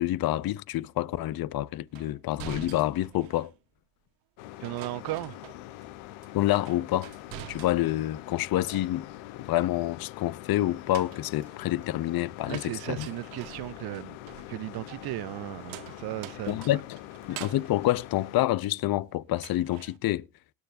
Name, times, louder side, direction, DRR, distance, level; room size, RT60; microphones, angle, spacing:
voice 1, 0.0-3.5 6.3-7.1 7.5-13.1 16.5-17.0 17.3-20.3, left 15 dB, 50° left, 0.6 m, -28 dB
sound 1, 1.9-3.6 4.6-5.9 6.2-8.1 8.4-9.3 10.7-19.0 19.3-20.0, right 15 dB, 75° right, 1.1 m, -47 dB
sound 2, 4.4-18.5, left 15 dB, 75° left, 0.9 m, -44 dB
voice 2, 4.6-5.3 12.5-14.2 14.5-16.6, right 19 dB, 55° right, 0.5 m, -36 dB
19.5 x 9.7 x 2.6 m
hypercardioid pair, 65°, 47 cm